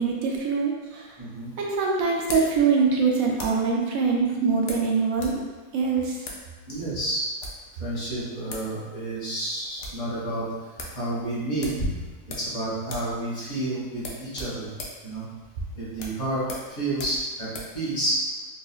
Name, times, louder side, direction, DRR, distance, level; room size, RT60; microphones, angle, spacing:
voice 1, 0.0-1.1 1.6-5.4 5.7-6.2, right 5 dB, 70° right, -1 dB, 0.9 m, -23 dB
sound 1, 0.8-3.7 4.7-5.4 5.7-5.8 6.2-6.5 7.2-7.7 8.2-8.3 8.5-8.7 9.0-9.1 9.5-10.1 10.4-10.5 10.8-11.0 11.6-12.6 12.8-13.2 13.4-13.6 14.0-17.8, left 2 dB, 70° left, 1.0 m, -39 dB
voice 2, 1.2-1.5 6.7-7.3 7.8-10.5 10.9-11.9 12.4-14.7 15.0-15.2 15.7-17.5 17.7-18.2, right 1 dB, 30° left, -9 dB, 1.2 m, -30 dB
3.8 x 2.7 x 2.3 m, 1.3 s
omnidirectional pair, 1.7 m